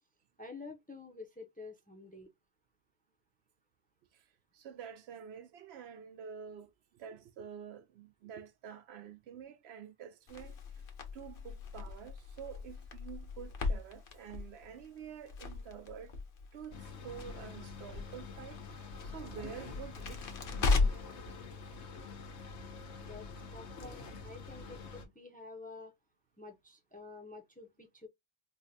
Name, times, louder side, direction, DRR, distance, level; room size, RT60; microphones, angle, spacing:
voice 1, 0.4-2.3 23.0-25.9 26.4-28.1, left 3 dB, 10° left, 0.5 m, -49 dB
voice 2, 4.1-10.8 11.1-16.2 16.5-20.2 20.5-21.0, right 8 dB, 75° right, 0.8 m, -48 dB
Crackle, 10.3-21.2, left 4 dB, 60° left, 0.9 m, -37 dB
sound 1, 16.7-25.1, left 4 dB, 85° left, 1.1 m, -47 dB
4.6 x 2.2 x 2.6 m
omnidirectional pair, 1.1 m